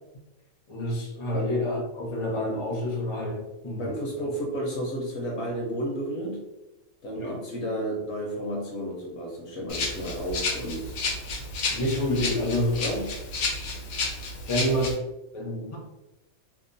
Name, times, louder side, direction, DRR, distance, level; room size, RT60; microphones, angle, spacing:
voice 1, 0.7-4.0 7.2-7.4 11.7-12.8 14.5-15.0 15.3-15.8, left 1 dB, 40° left, -2 dB, 0.4 m, -28 dB
voice 2, 3.8-6.4 7.0-11.0 12.8-13.1, right 1 dB, 65° left, -1 dB, 0.8 m, -32 dB
Rattle (instrument), 9.7-14.9, left 3 dB, 90° left, 1.1 m, -31 dB
2.8 x 2.2 x 2.5 m, 1.0 s
omnidirectional pair, 1.5 m